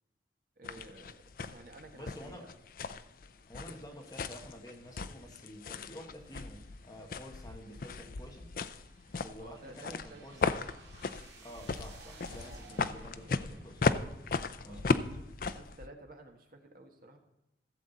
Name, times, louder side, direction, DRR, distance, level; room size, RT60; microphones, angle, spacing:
voice 1, 0.5-2.5 9.4-10.6 11.0-11.5 14.6-15.0 15.5-17.2, right 2 dB, 50° right, 3 dB, 1.5 m, -53 dB
sound 1, 0.6-15.9, left 4 dB, 50° left, 0.5 m, -36 dB
voice 2, 1.9-2.6 3.5-8.5 9.2-10.7 11.4-13.8 14.6-15.2, equal, 20° left, 2 dB, 1.4 m, -49 dB
sound 2, 4.0-15.7, right 3 dB, 75° right, 2.1 m, -58 dB
16.0 x 7.6 x 4.0 m, 0.93 s
head